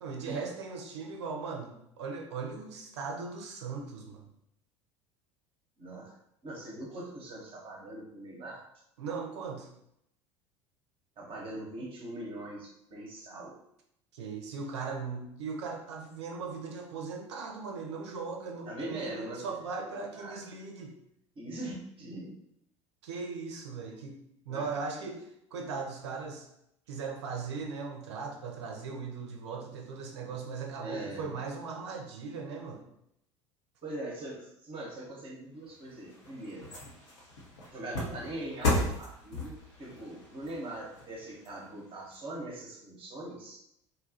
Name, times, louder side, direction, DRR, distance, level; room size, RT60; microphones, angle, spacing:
voice 1, 0.0-4.2 9.0-9.7 14.1-20.9 23.0-24.2 24.5-26.5 26.9-32.8, right 4 dB, 65° right, 2 dB, 0.6 m, -38 dB
voice 2, 5.8-6.1 6.4-8.6 11.2-13.6 18.7-19.5 20.1-20.4 21.4-22.4 24.5-24.6 30.8-31.3 33.8-36.7 37.7-43.6, right 1 dB, 35° right, -1 dB, 0.9 m, -41 dB
sound 1, 35.7-42.1 42.6-42.7, left 2 dB, 70° left, 0.9 m, -36 dB
4.2 x 2.3 x 2.6 m, 0.76 s
figure-of-eight pair, 70°, 15 cm